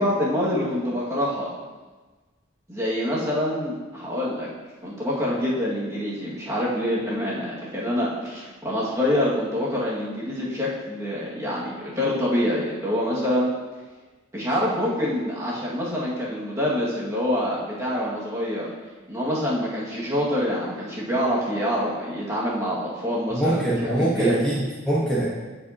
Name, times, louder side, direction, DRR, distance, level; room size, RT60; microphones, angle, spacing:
voice 1, 0.0-1.5 2.7-4.5 4.8-13.5 14.3-18.7 19.1-24.4, equal, 15° right, -8 dB, 2.0 m, -26 dB
voice 2, 23.3-25.2, right 1 dB, 5° left, -9 dB, 1.3 m, -23 dB
12.5 x 5.3 x 2.9 m, 1.3 s
head